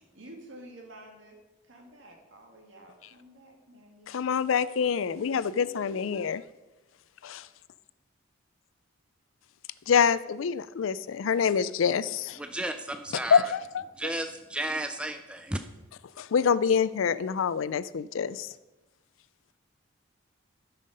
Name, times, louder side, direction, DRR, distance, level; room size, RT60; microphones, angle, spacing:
voice 1, 0.1-1.4 1.6-4.6 5.5-6.3, right 1 dB, 75° right, 0 dB, 2.4 m, -50 dB
voice 2, 4.1-6.4 7.2-7.5 9.9-12.4 13.1-14.1 16.2-18.5, left 6 dB, 85° left, 17 dB, 0.4 m, -26 dB
voice 3, 12.4-13.5 14.0-15.6, right 1 dB, 5° right, 7 dB, 0.4 m, -33 dB
13.0 x 5.7 x 5.2 m, 1.1 s
head